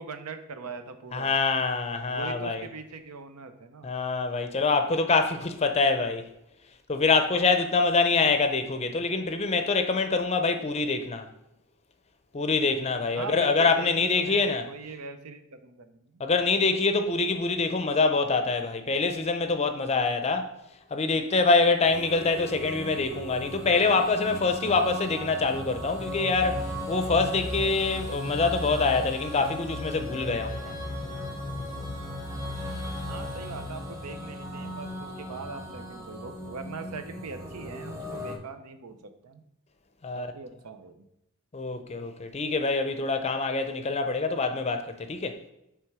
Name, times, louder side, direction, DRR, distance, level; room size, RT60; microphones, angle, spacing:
voice 1, 0.0-1.4 2.1-3.9 13.1-16.1 33.1-39.4 40.1-41.1, right 4 dB, 90° right, 0.7 m, -41 dB
voice 2, 1.1-2.7 3.8-6.3 6.9-11.3 12.3-14.6 16.2-20.5 20.9-30.7 40.0-40.3 41.5-45.4, left 4 dB, 30° left, 0.5 m, -25 dB
sound 1, 21.8-38.4, left 1 dB, 15° right, 0.9 m, -36 dB
7.7 x 3.4 x 4.7 m
head